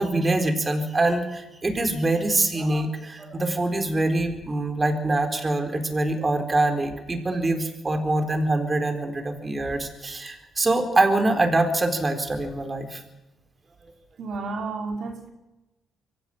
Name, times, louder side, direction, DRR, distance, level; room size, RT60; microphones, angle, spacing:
voice 1, 0.0-13.0, right 2 dB, 25° right, 4.2 m, -24 dB
voice 2, 14.2-15.3, right 3 dB, 65° right, 2.8 m, -31 dB
24.0 x 15.0 x 9.0 m
cardioid pair, 90°, 0 cm